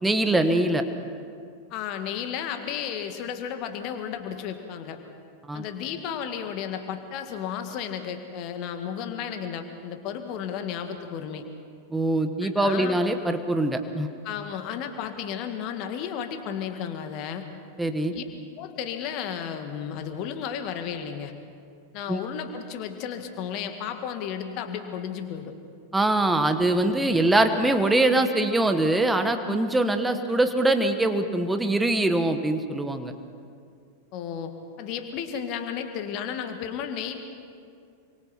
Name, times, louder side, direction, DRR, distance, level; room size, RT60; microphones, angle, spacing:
voice 1, 0.0-0.8 5.5-5.6 11.9-14.1 17.8-18.1 22.1-22.2 25.9-33.1, right 2 dB, 5° right, 8 dB, 1.5 m, -23 dB
voice 2, 1.7-5.0 5.5-11.4 12.4-13.0 14.2-17.5 18.1-18.2 18.6-21.3 21.9-25.5 29.5-29.7 34.1-37.2, left 8 dB, 40° left, 7 dB, 2.0 m, -33 dB
28.0 x 24.5 x 4.6 m, 2.3 s
figure-of-eight pair, 90°, 0 cm